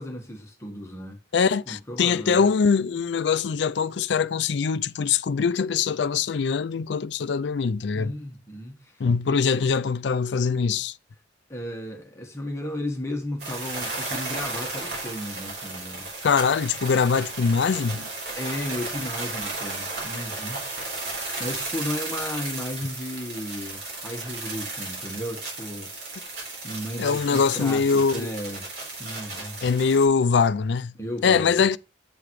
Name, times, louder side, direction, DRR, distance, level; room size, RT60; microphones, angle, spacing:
voice 1, 0.0-1.2 1.7-2.5 7.9-9.6 11.5-16.1 18.3-20.7 21.4-28.7 29.0-29.6 31.0-31.5, left 1 dB, 15° left, 1.3 m, -34 dB
voice 2, 1.3-8.1 9.0-10.9 16.2-18.1 27.0-28.3 29.6-30.9 31.2-31.8, left 5 dB, 70° left, 0.4 m, -23 dB
sound 1, 13.4-30.0, right 3 dB, 60° right, 3.9 m, -34 dB
8.6 x 6.8 x 3.2 m
head